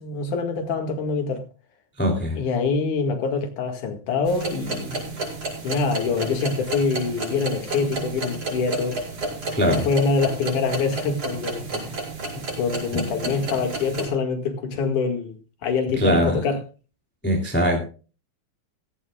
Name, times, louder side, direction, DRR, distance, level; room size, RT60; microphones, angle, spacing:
voice 1, 0.0-1.4 2.3-5.2 5.6-9.0 9.7-12.0 12.3-16.6, left 4 dB, 85° left, 3.5 m, -25 dB
voice 2, 2.0-2.4 9.5-9.8 12.9-13.0 16.0-16.4 17.2-17.8, equal, 5° left, 2.5 m, -21 dB
sound 1, 4.2-14.1, right 3 dB, 50° right, 6.3 m, -31 dB
16.5 x 15.5 x 2.4 m
omnidirectional pair, 3.4 m